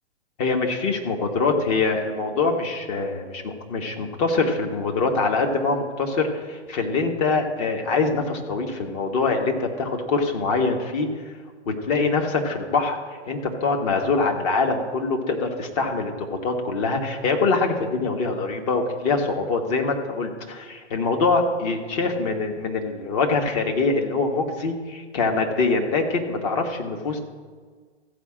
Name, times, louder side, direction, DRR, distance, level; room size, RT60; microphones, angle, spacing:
voice 1, 0.4-11.1 11.7-13.0 13.3-16.1 16.4-27.2, left 3 dB, 35° left, 3 dB, 1.6 m, -24 dB
14.5 x 5.0 x 7.5 m, 1.5 s
hypercardioid pair, 135°, 35 cm